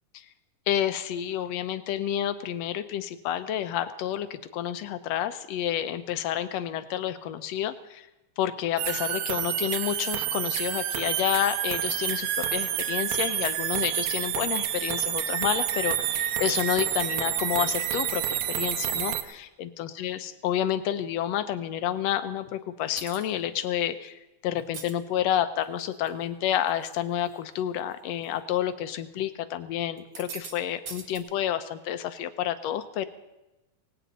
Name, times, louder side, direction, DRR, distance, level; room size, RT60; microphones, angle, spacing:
voice 1, 0.7-8.1 8.4-24.2 24.4-33.1, left 11 dB, 75° left, 12 dB, 1.7 m, -29 dB
sound 1, 8.8-19.2, right 11 dB, 75° right, 2.1 m, -29 dB
sound 2, 23.0-23.3 24.6-24.9 25.6-26.1 26.5-27.0 27.3-27.4 28.2-28.4 30.0-30.5 30.9-31.2, right 6 dB, 55° right, 2.5 m, -41 dB
18.5 x 17.0 x 4.0 m, 1.0 s
omnidirectional pair, 3.5 m